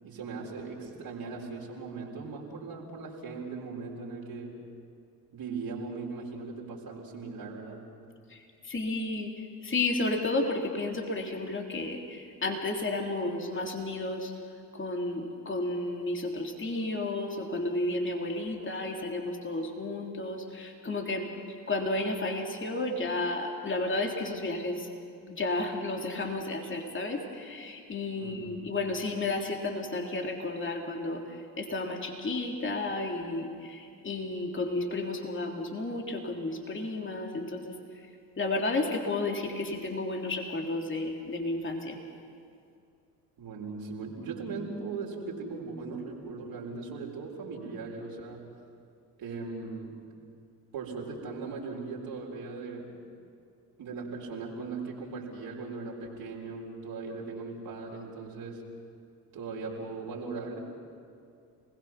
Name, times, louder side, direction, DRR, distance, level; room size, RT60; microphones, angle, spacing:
voice 1, 0.0-4.6 5.3-7.9 28.2-28.7 43.4-48.5 49.2-50.0 50.7-52.9 53.8-58.6 59.3-60.6, right 4 dB, 50° right, -2 dB, 4.1 m, -39 dB
voice 2, 8.7-9.3 9.6-14.3 14.8-21.3 21.7-24.9 25.3-31.2 31.6-37.7 38.4-42.0, left 2 dB, 25° left, 2 dB, 3.4 m, -32 dB
30.0 x 20.5 x 5.9 m, 2.4 s
figure-of-eight pair, 50°, 47 cm